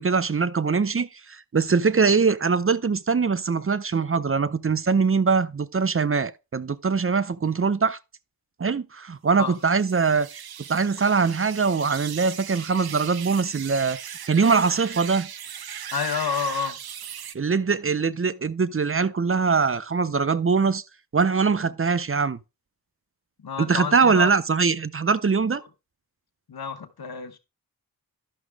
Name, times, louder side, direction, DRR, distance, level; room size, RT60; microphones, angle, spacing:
voice 1, 0.0-8.0 8.6-10.4 10.7-15.3 17.3-20.8 21.1-22.4 23.6-25.6, right 5 dB, 35° right, 0.5 m, -22 dB
sound 1, 9.5-17.4, right 9 dB, 90° right, 0.5 m, -38 dB
voice 2, 15.9-16.8 23.4-24.3 26.5-27.4, left 6 dB, 90° left, 1.0 m, -29 dB
11.5 x 6.1 x 3.4 m
wide cardioid pair, 45°, 36 cm